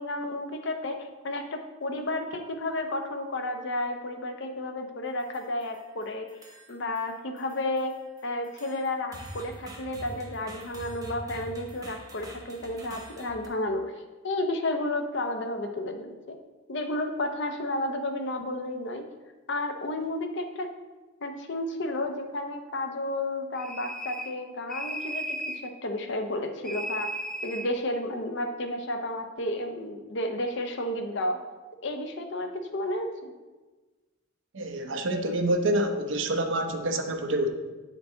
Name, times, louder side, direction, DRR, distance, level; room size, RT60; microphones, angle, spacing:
voice 1, 0.0-6.3 6.7-13.8 14.2-16.4 16.7-19.0 19.5-20.7 21.2-25.4 25.6-27.1 27.4-31.4 31.8-33.3, left 1 dB, 60° left, 5 dB, 0.7 m, -32 dB
sound 1, 5.1-5.9 6.3-7.1 7.4-13.5, right 1 dB, 20° right, 1.0 m, -45 dB
sound 2, 23.6-24.4 24.7-25.7 26.6-27.7, right 1 dB, 5° left, 0.5 m, -35 dB
voice 2, 34.5-37.5, right 1 dB, 65° right, 5 dB, 0.7 m, -27 dB
8.2 x 4.6 x 3.8 m, 1.2 s
head